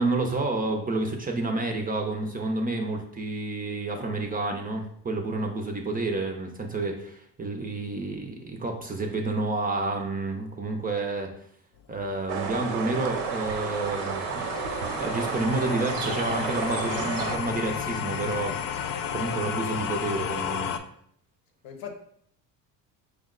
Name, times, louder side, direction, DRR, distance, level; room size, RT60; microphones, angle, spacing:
voice 1, 0.0-11.3 11.9-14.5 14.8-18.6 19.1-20.7, right 2 dB, 20° right, 3 dB, 0.5 m, -29 dB
sound 1, 12.0-20.8, left 8 dB, 50° left, 0.5 m, -33 dB
sound 2, 12.3-17.4, right 5 dB, 75° right, 0.8 m, -31 dB
voice 2, 15.6-15.9 16.8-17.1 21.6-22.0, left 5 dB, 70° left, 4 dB, 0.9 m, -41 dB
4.9 x 2.1 x 3.7 m, 0.67 s
supercardioid pair, 90°, 45 cm